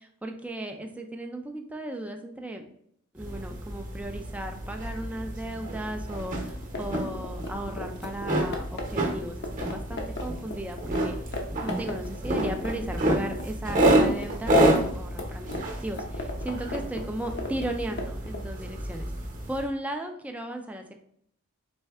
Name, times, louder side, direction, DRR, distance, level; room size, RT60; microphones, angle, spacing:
voice 1, 0.2-2.6 3.1-10.8 11.0-11.2 11.6-15.5 15.8-19.1 19.5-20.9, right 1 dB, 5° right, 4 dB, 0.4 m, -36 dB
sound 1, 3.2-19.7, right 1 dB, 40° right, 0.9 m, -29 dB
sound 2, 6.4-11.0 11.3-11.4 11.7-13.4 13.7-18.5, left 2 dB, 50° left, 0.8 m, -36 dB
4.3 x 3.2 x 3.5 m, 0.69 s
head